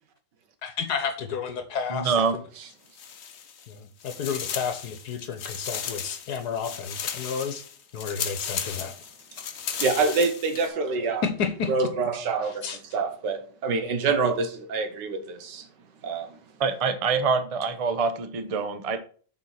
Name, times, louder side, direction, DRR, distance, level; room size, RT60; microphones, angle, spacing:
voice 1, 0.6-2.1 3.7-7.6 7.9-8.9 11.2-11.7 12.4-12.8, left 6 dB, 70° left, 1.4 m, -31 dB
voice 2, 1.9-2.4 16.6-19.0, right 5 dB, 60° right, 0.3 m, -25 dB
sound 1, 2.9-3.7 4.0-10.7, left 7 dB, 50° left, 0.8 m, -35 dB
voice 3, 9.8-11.2 11.7-12.5 12.9-15.2 16.0-16.2, right 4 dB, 80° right, 1.7 m, -25 dB
6.5 x 4.5 x 5.8 m
omnidirectional pair, 1.9 m